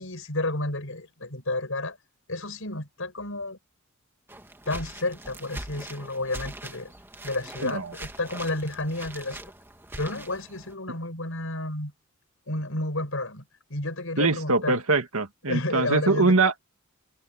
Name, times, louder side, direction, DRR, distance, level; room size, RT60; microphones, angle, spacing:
voice 1, 0.0-2.0 2.3-3.6 4.6-6.9 7.2-9.4 10.0-11.9 12.5-13.4 13.7-14.7 15.5-16.4, left 2 dB, 70° left, 5.0 m, -31 dB
sound 1, 4.3-10.7, right 1 dB, 10° right, 1.9 m, -42 dB
voice 2, 14.2-16.6, right 3 dB, 80° right, 2.2 m, -23 dB
head